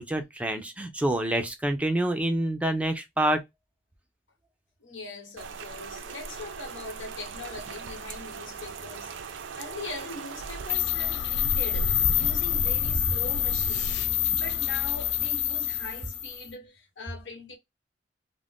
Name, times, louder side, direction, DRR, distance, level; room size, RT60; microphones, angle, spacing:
voice 1, 0.0-3.4, right 1 dB, 5° right, 0.4 m, -27 dB
voice 2, 4.8-14.0 14.3-17.6, left 2 dB, 85° left, 1.1 m, -41 dB
Rain, 5.4-10.7, right 6 dB, 75° right, 0.4 m, -40 dB
sound 1, 10.7-16.5, left 9 dB, 65° left, 0.3 m, -26 dB
2.4 x 2.1 x 3.4 m
head